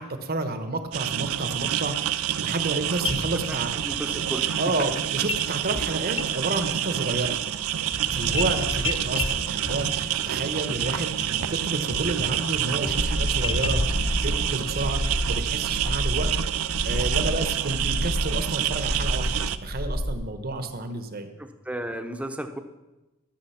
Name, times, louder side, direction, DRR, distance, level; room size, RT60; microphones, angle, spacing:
voice 1, 0.0-3.7 4.6-7.4 8.1-21.3, right 2 dB, 45° right, 8 dB, 1.0 m, -30 dB
sound 1, 0.9-19.6, right 10 dB, 90° right, 0.5 m, -28 dB
sound 2, 2.7-2.8 3.0-4.0 5.3-5.5 5.7-6.8 7.1-14.1, left 2 dB, 25° left, 0.6 m, -32 dB
voice 2, 3.8-4.6 21.4-22.6, right 1 dB, 5° right, 7 dB, 0.8 m, -34 dB
sound 3, 12.9-20.1, equal, 85° left, 1.7 m, -29 dB
13.5 x 6.8 x 5.7 m, 1.1 s
head